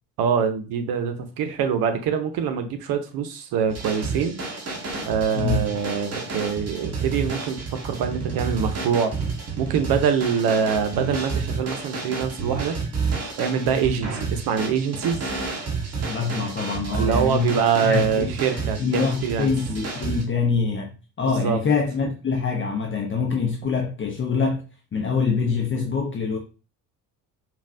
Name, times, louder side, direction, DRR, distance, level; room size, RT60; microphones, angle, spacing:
voice 1, 0.2-4.4 5.0-9.1 9.6-12.7 13.4-15.3 16.9-19.5 21.3-21.6, right 7 dB, 50° right, 0.9 m, -24 dB
sound 1, 3.7-20.2, right 4 dB, 35° right, 1.5 m, -30 dB
voice 2, 5.3-5.7 16.1-18.3 18.8-24.7 24.9-26.4, left 5 dB, 25° left, 0.9 m, -25 dB
5.1 x 2.6 x 2.7 m
figure-of-eight pair, 50°, 46 cm